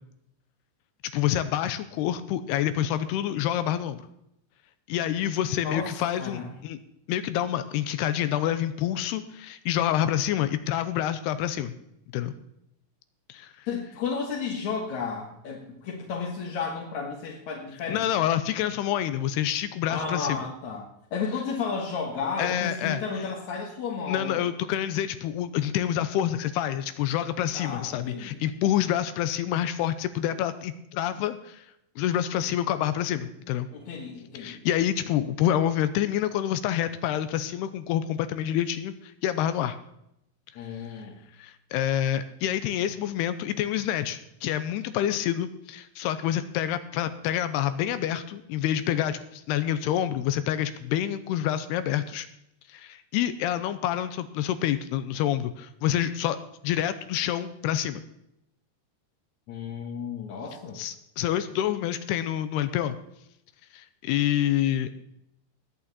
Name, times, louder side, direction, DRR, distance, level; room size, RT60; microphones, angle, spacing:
voice 1, 1.1-4.1 4.9-6.8 7.1-11.7 12.1-12.3 13.3-13.7 17.9-20.4 22.4-23.0 24.1-31.7 32.0-33.7 34.4-39.8 41.4-52.3 52.7-56.4 56.6-58.0 60.8-63.0 63.7-64.9, left 11 dB, 85° left, 12 dB, 2.6 m, -27 dB
voice 2, 5.6-6.6 13.7-18.1 19.9-24.4 27.5-28.4 33.7-34.6 40.6-41.2 59.5-60.8, left 5 dB, 55° left, -2 dB, 2.4 m, -33 dB
20.0 x 8.6 x 4.2 m, 0.79 s
omnidirectional pair, 4.9 m